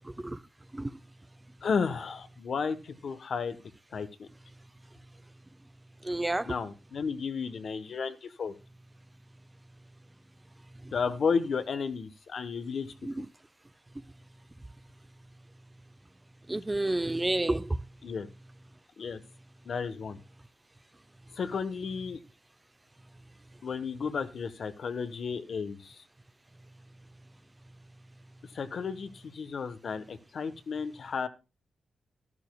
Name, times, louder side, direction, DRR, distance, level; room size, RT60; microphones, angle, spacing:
voice 1, 1.6-3.6 3.9-4.3 6.5-8.5 10.9-12.9 13.2-13.3 18.0-18.3 19.0-19.2 19.6-20.2 21.3-22.2 23.6-26.0 28.5-31.3, left 5 dB, 65° left, 1.0 m, -33 dB
voice 2, 6.1-6.5 13.0-13.3 16.5-17.6, right 2 dB, 20° right, 0.5 m, -29 dB
13.0 x 11.0 x 2.3 m
cardioid pair, 70°, 0 cm